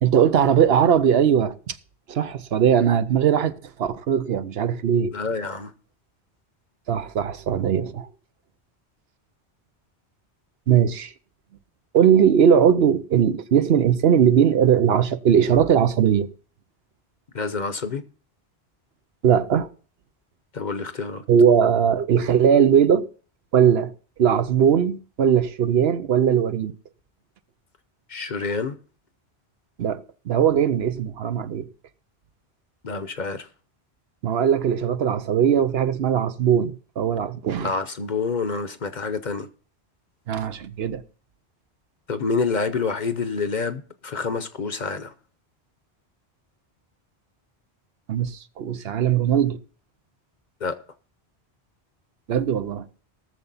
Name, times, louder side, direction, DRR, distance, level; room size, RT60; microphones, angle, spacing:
voice 1, 0.0-1.8 2.1-5.1 6.9-8.1 10.7-11.1 11.9-16.3 19.2-19.7 21.3-23.0 23.5-23.9 24.2-26.7 29.8-30.0 30.3-31.7 34.2-37.7 40.3-41.0 48.1-49.6 52.3-52.9, right 8 dB, 70° right, 0.9 m, -19 dB
voice 2, 5.1-5.7 17.3-18.0 20.5-21.2 28.1-28.8 32.8-33.5 37.6-39.5 42.1-45.1 50.6-50.7, left 4 dB, 45° left, 0.9 m, -27 dB
18.0 x 6.9 x 4.1 m
omnidirectional pair, 1.1 m